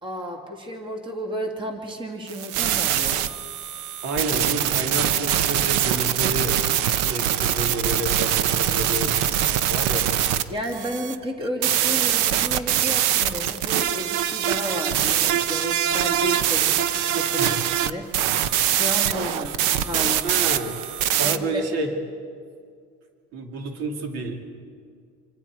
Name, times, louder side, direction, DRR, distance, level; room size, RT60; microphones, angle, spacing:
voice 1, 0.0-3.3 8.6-9.1 10.5-16.8 17.1-18.0 18.5-19.6 19.8-20.4 21.2-21.6, equal, 15° right, 2 dB, 2.3 m, -32 dB
sound 1, 2.3-21.4, right 10 dB, 75° right, 1.0 m, -23 dB
voice 2, 4.0-6.5 6.9-9.2 9.6-10.1 17.4-17.7 20.2-20.8 21.2-21.9 23.3-24.5, right 2 dB, 55° right, 3 dB, 2.4 m, -30 dB
26.5 x 25.5 x 4.7 m, 2.2 s
cardioid pair, 165°, 30 cm